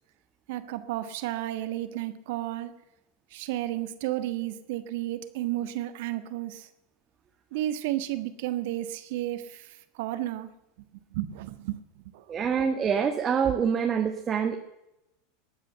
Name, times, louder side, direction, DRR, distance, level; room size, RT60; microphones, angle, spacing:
voice 1, 0.5-2.8 3.3-6.7 7.5-10.5 11.1-11.8 12.1-12.2, right 14 dB, 60° right, 11 dB, 1.5 m, -32 dB
voice 2, 12.3-14.6, right 7 dB, 30° right, 4 dB, 1.6 m, -26 dB
21.0 x 9.1 x 6.8 m, 0.91 s
figure-of-eight pair, 85°, 0 cm